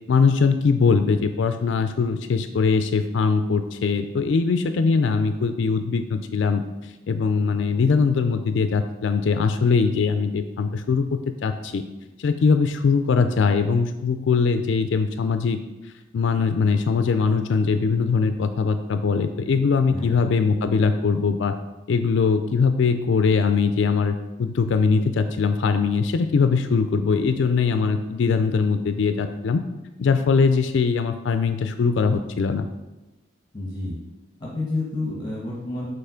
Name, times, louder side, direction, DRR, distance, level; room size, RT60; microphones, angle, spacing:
voice 1, 0.1-6.6 7.1-11.8 12.2-15.6 16.1-21.5 21.9-29.6 30.0-32.7, left 5 dB, 65° left, 8 dB, 0.3 m, -21 dB
voice 2, 33.5-34.0 34.4-35.9, left 2 dB, 20° left, -4 dB, 1.1 m, -29 dB
5.5 x 4.0 x 5.0 m, 1.0 s
head